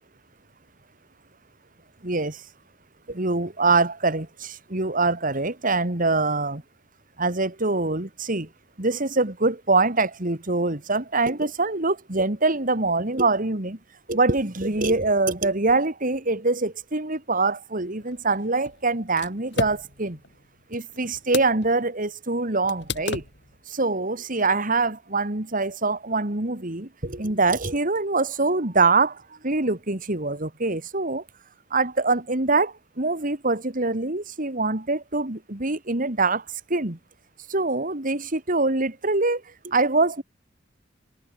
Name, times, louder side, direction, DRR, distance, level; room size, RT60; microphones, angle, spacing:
voice 1, 2.0-2.4 3.1-6.6 7.2-8.5 8.8-13.8 14.1-20.2 20.7-23.2 23.7-31.2 31.7-36.4 36.7-37.0 37.5-40.2, right 3 dB, 45° right, 2.5 m, -24 dB
sound 1, 18.0-21.8 22.1-22.2 22.7-23.6, left 3 dB, 65° left, 3.0 m, -34 dB
head